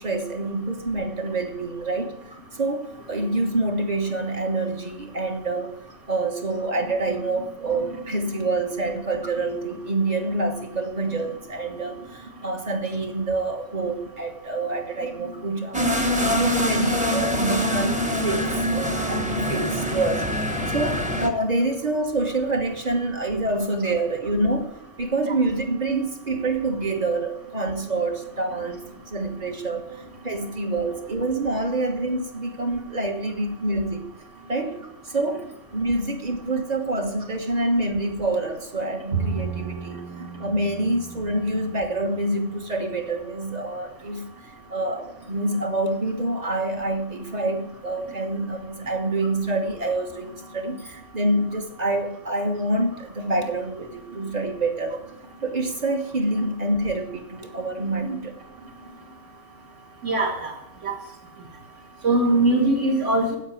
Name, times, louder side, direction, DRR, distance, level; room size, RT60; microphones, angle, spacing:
voice 1, 0.0-2.1 2.5-5.8 6.1-34.1 34.5-55.0 55.4-58.4, right 2 dB, 30° right, 4 dB, 1.5 m, -27 dB
sound 1, 15.7-21.3, left 1 dB, 5° right, 1.0 m, -24 dB
Bowed string instrument, 39.1-42.5, right 6 dB, 90° right, 1.7 m, -33 dB
voice 2, 60.0-60.5 60.8-60.9 62.0-63.4, right 2 dB, 55° right, 1 dB, 2.7 m, -21 dB
9.3 x 8.2 x 8.5 m, 0.82 s
omnidirectional pair, 1.5 m